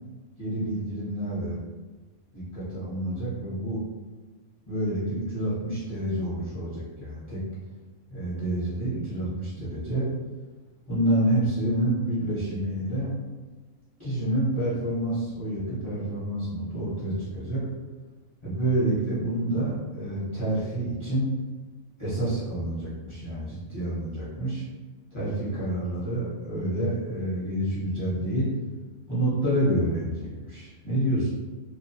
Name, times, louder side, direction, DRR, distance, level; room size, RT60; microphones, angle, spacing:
voice 1, 0.4-1.6 2.3-3.8 4.6-7.4 8.1-10.1 10.9-13.1 14.0-17.7 18.4-21.3 22.0-24.6 25.1-28.5 29.1-31.3, right 1 dB, 30° left, -11 dB, 0.7 m, -28 dB
2.3 x 2.1 x 2.7 m, 1.3 s
omnidirectional pair, 1.4 m